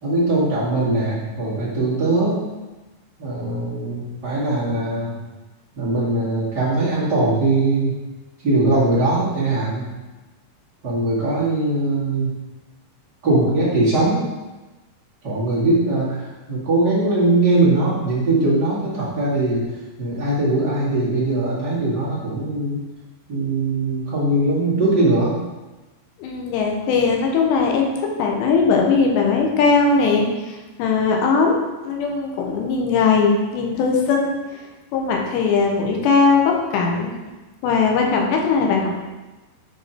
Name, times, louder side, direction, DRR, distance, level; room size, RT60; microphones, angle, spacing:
voice 1, 0.0-2.4 3.2-5.1 5.8-8.0 8.4-9.8 10.8-12.3 13.2-14.2 15.2-19.6 20.0-22.8 23.3-25.3, right 2 dB, 35° right, -9 dB, 2.0 m, -20 dB
voice 2, 26.2-34.6 34.9-37.1 37.6-38.9, left 4 dB, 90° left, 1 dB, 3.3 m, -19 dB
9.6 x 5.2 x 4.5 m, 1.2 s
omnidirectional pair, 4.9 m